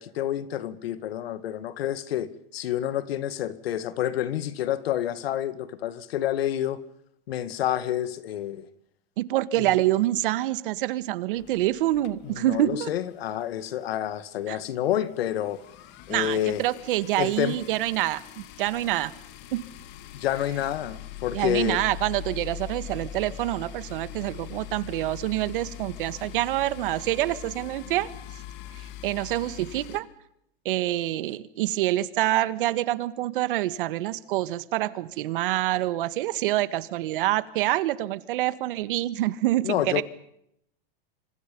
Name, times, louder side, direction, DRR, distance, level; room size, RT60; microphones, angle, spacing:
voice 1, 0.0-6.8 7.3-8.6 12.4-15.6 16.1-16.6 17.2-17.6 20.1-21.8 39.6-40.0, left 11 dB, 75° left, 2.3 m, -28 dB
voice 2, 9.2-12.9 14.5-14.6 16.1-19.1 19.5-19.6 21.3-28.1 28.7-30.1 30.7-40.0, right 15 dB, 60° right, 1.7 m, -26 dB
sound 1, 11.3-13.1 13.4-13.6 13.9-14.0 14.2-30.0, left 11 dB, 35° left, 2.3 m, -42 dB
27.5 x 26.5 x 5.4 m
supercardioid pair, 160°, 30 cm